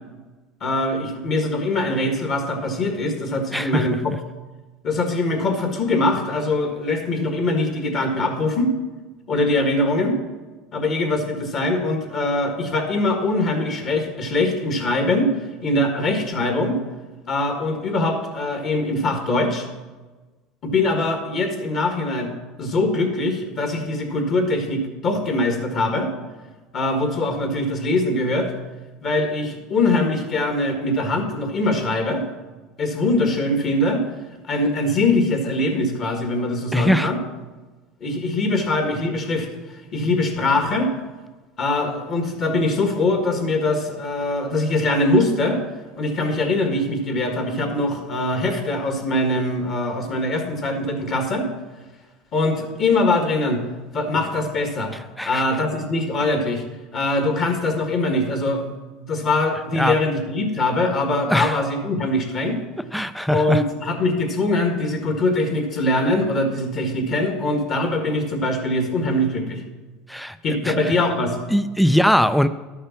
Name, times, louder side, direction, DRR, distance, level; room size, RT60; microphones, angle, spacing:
voice 1, 0.6-4.2 4.8-8.7 9.3-10.2 10.7-15.3 15.6-16.8 17.3-19.7 20.6-22.3 22.6-26.1 26.7-28.5 29.0-32.3 32.8-34.0 34.5-37.2 38.0-40.9 41.6-45.6 46.0-51.5 52.3-53.6 53.9-54.9 55.2-56.6 56.9-58.7 59.1-62.6 63.3-69.6 70.4-71.4, left 2 dB, 40° left, 4 dB, 1.7 m, -22 dB
voice 2, 3.5-4.0 36.7-37.1 55.2-55.4 59.7-60.0 61.3-61.6 62.9-63.6 70.1-70.4 70.6-70.9 71.5-72.5, equal, ahead, 12 dB, 0.4 m, -20 dB
11.5 x 6.6 x 5.8 m, 1.3 s
supercardioid pair, 135°, 0 cm